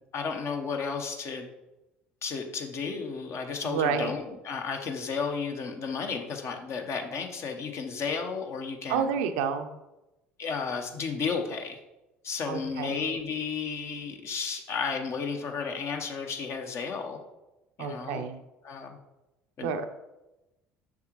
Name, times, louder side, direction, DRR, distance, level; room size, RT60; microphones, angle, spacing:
voice 1, 0.1-1.5 2.2-9.1 10.4-11.8 12.2-17.2 17.8-18.3 18.6-19.0 19.6-19.7, left 5 dB, 45° left, 4 dB, 1.0 m, -33 dB
voice 2, 3.6-4.1 8.9-9.7 12.5-13.0 17.8-18.4 19.6-19.8, right 6 dB, 65° right, 8 dB, 0.6 m, -29 dB
7.2 x 6.4 x 3.1 m, 0.98 s
figure-of-eight pair, 60°, 7 cm